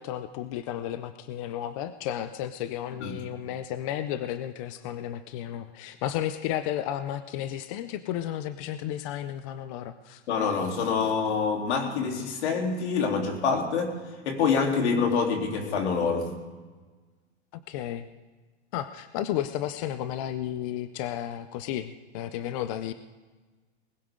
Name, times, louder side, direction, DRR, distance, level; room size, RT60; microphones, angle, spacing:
voice 1, 0.0-10.2 17.7-18.1 18.7-22.9, left 11 dB, 30° left, 12 dB, 0.4 m, -33 dB
voice 2, 10.3-13.9 14.3-16.3, left 5 dB, 70° left, 1 dB, 3.4 m, -26 dB
20.0 x 16.0 x 3.7 m, 1.3 s
supercardioid pair, 155°, 35 cm